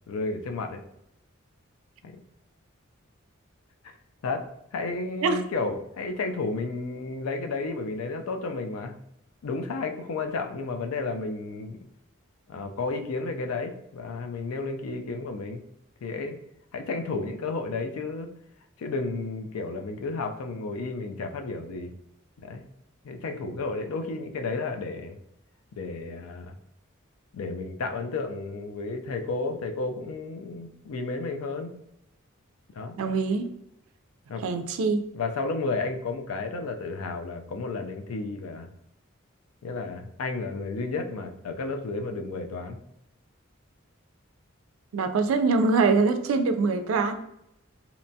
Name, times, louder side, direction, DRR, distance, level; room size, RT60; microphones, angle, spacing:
voice 1, 0.1-0.8 2.0-2.2 3.8-3.9 4.2-4.4 4.7-9.0 9.4-11.8 12.5-15.6 16.0-16.4 16.7-18.3 18.8-21.9 22.4-22.6 23.0-25.2 25.8-26.5 27.3-31.7 32.7-33.0 34.3-34.4 35.1-38.7 39.6-42.8, left 3 dB, 85° left, 6 dB, 0.4 m, -32 dB
voice 2, 33.0-33.5 34.4-35.0 44.9-47.2, right 4 dB, 75° right, 8 dB, 0.3 m, -23 dB
2.8 x 2.2 x 2.7 m, 0.78 s
head